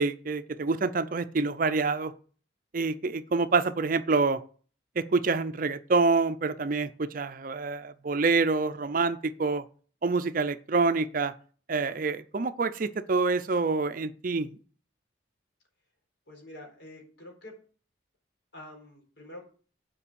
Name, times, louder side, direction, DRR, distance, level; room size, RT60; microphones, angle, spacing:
voice 1, 0.0-2.1 2.7-4.4 5.0-9.6 10.0-11.3 11.7-14.5, right 4 dB, 45° right, 12 dB, 0.5 m, -27 dB
voice 2, 16.3-17.5 18.5-19.4, left 1 dB, 65° left, 1 dB, 4.0 m, -46 dB
8.5 x 5.3 x 6.9 m, 0.41 s
head